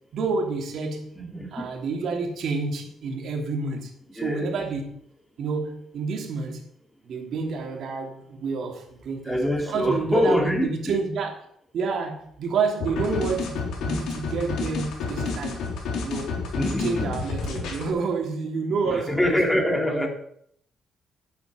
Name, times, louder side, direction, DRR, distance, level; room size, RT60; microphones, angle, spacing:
voice 1, 0.1-1.1 1.5-3.9 4.2-4.9 5.4-6.6 7.0-9.4 9.7-11.4 11.7-15.6 16.0-16.3 16.6-20.1, right 4 dB, 65° right, 1 dB, 3.1 m, -29 dB
voice 2, 1.2-1.7 4.2-4.5 9.2-11.0 16.5-17.1 18.9-20.1, left 1 dB, 10° left, 2 dB, 2.5 m, -25 dB
sound 1, 12.8-17.9, left 4 dB, 85° left, 3.2 m, -30 dB
10.5 x 7.8 x 6.4 m, 0.68 s
cardioid pair, 90°, 0 cm